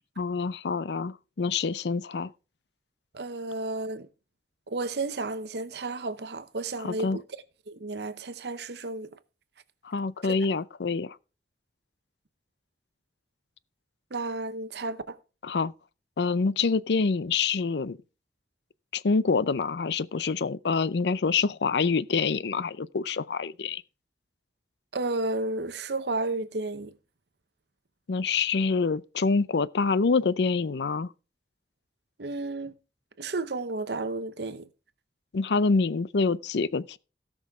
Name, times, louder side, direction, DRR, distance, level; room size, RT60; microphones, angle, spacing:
voice 1, 0.2-2.3 6.8-7.2 9.8-11.2 15.4-15.7 16.2-18.0 18.9-23.8 28.1-31.1 35.3-37.0, left 4 dB, 80° left, 0.5 m, -26 dB
voice 2, 3.1-4.1 4.7-7.2 7.7-9.1 10.3-10.4 14.1-15.2 24.9-26.9 32.2-32.7 33.2-34.7, right 2 dB, 75° right, 0.8 m, -32 dB
17.0 x 6.2 x 3.6 m
head